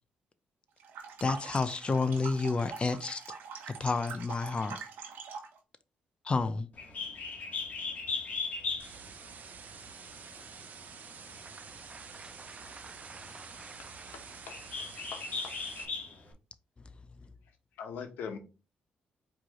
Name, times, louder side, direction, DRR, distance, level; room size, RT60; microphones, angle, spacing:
sound 1, 0.8-5.6, right 6 dB, 85° right, 1.0 m, -44 dB
voice 1, 1.2-3.2 3.7-4.8 6.2-6.7, left 4 dB, 35° left, 0.6 m, -30 dB
Bird, 6.7-16.3, left 4 dB, 50° left, 1.5 m, -39 dB
sound 2, 8.8-15.8, right 6 dB, 60° right, 0.7 m, -49 dB
voice 2, 11.4-14.7, right 3 dB, 25° right, 0.3 m, -52 dB
voice 3, 14.1-14.6 15.1-15.5 17.8-18.4, left 6 dB, 85° left, 1.0 m, -42 dB
4.7 x 3.1 x 3.7 m
cardioid pair, 70°, 3 cm